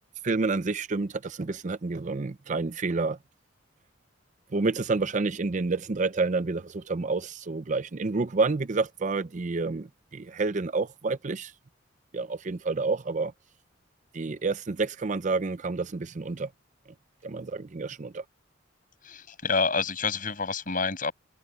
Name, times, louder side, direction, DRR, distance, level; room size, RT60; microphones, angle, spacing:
voice 1, 0.2-3.2 4.5-11.5 12.1-13.3 14.1-16.5 17.2-18.2, right 3 dB, 40° right, 0.6 m, -29 dB
voice 2, 19.0-21.1, left 4 dB, 45° left, 7.3 m, -28 dB
head